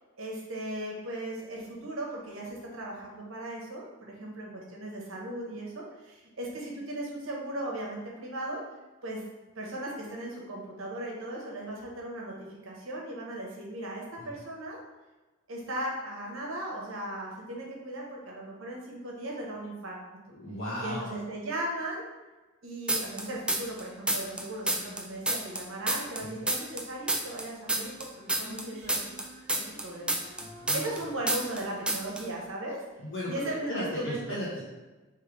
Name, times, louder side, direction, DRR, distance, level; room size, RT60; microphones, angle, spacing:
voice 1, 0.2-8.6 9.0-9.2 9.5-14.8 15.5-20.0 20.8-22.0 22.6-29.2 29.6-30.2 30.7-32.8 33.3-34.4, right 1 dB, 70° right, -2 dB, 1.1 m, -37 dB
voice 2, 20.3-21.1 30.4-30.9 33.0-34.6, equal, 65° left, -8 dB, 1.0 m, -36 dB
sound 1, 22.9-23.8 24.1-26.8 27.1-31.0 31.3-31.6 31.9-32.2, right 2 dB, 5° right, 0.3 m, -28 dB
Female singing, 28.4-31.9, left 1 dB, 40° right, 1.5 m, -51 dB
3.3 x 3.3 x 4.7 m, 1.2 s
head